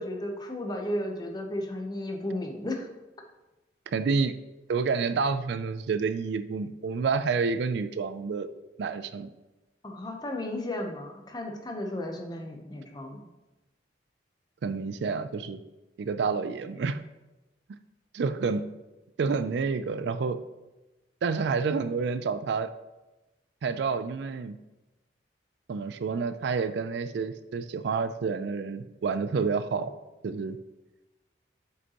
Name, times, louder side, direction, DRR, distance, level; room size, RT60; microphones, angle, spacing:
voice 1, 0.0-2.9 9.8-13.3, left 1 dB, 20° left, 2 dB, 0.8 m, -34 dB
voice 2, 3.9-4.3 4.7-8.5 8.8-9.3 14.6-15.6 16.0-17.0 18.1-18.7 19.2-20.4 21.2-22.7 23.6-24.6 25.7-29.9 30.2-30.6, right 5 dB, 65° right, 12 dB, 0.3 m, -29 dB
8.0 x 5.1 x 2.9 m, 1.0 s
head